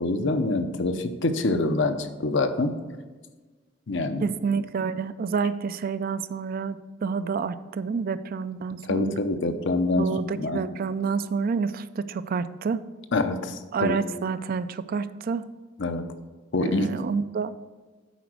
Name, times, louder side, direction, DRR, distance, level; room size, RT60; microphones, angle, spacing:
voice 1, 0.0-2.7 3.9-4.3 8.9-10.1 10.4-10.6 13.1-14.0 15.8-16.0 16.5-16.9, left 2 dB, 65° left, 8 dB, 0.7 m, -25 dB
voice 2, 4.2-9.1 10.0-12.8 13.7-15.4 16.6-17.5, right 5 dB, 45° right, 13 dB, 0.3 m, -28 dB
8.2 x 5.0 x 6.2 m, 1.3 s
head